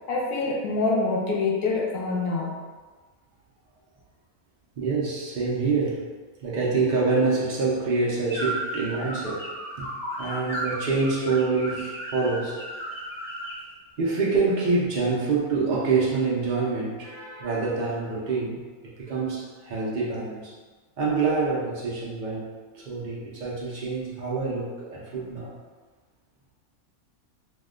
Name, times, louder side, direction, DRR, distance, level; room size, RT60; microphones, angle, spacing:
voice 1, 0.1-2.6, left 3 dB, 90° left, -3 dB, 1.1 m, -25 dB
voice 2, 4.8-6.0 6.4-9.4 9.8-9.9 10.2-12.6 14.0-18.6 19.0-20.5 21.0-22.5 22.7-25.5, right 4 dB, 80° right, -6 dB, 0.4 m, -26 dB
sound 1, 8.3-13.6, right 1 dB, 5° left, 0.5 m, -34 dB
2.8 x 2.1 x 3.6 m, 1.4 s
omnidirectional pair, 1.5 m